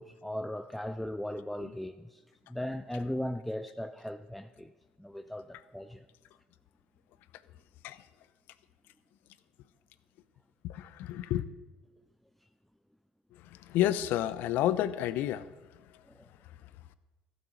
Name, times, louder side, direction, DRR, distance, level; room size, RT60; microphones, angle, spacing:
voice 1, 0.0-2.2 2.5-4.7 5.0-6.0 16.1-16.3, left 1 dB, ahead, 10 dB, 0.5 m, -38 dB
voice 2, 10.6-11.4 13.3-15.5, left 12 dB, 70° left, 16 dB, 0.7 m, -30 dB
14.5 x 9.0 x 6.5 m, 1.2 s
hypercardioid pair, 65°, 3 cm